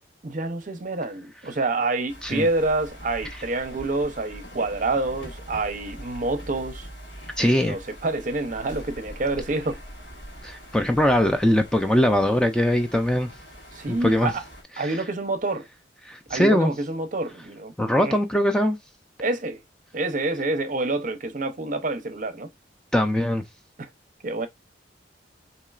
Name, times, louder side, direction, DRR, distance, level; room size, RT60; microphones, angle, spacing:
voice 1, 0.2-6.9 7.4-9.8 13.7-14.4 14.8-15.7 16.3-18.2 19.2-19.6 19.9-22.5 23.8-23.9 24.2-24.5, right 2 dB, 45° right, 0.6 m, -27 dB
sound 1, 2.1-14.6, equal, 70° left, 1.5 m, -43 dB
voice 2, 7.4-7.8 10.4-13.3 13.9-14.3 14.8-14.9 16.1-16.7 17.8-18.8 22.9-23.4, left 1 dB, 5° left, 0.4 m, -21 dB
4.2 x 2.9 x 2.4 m
head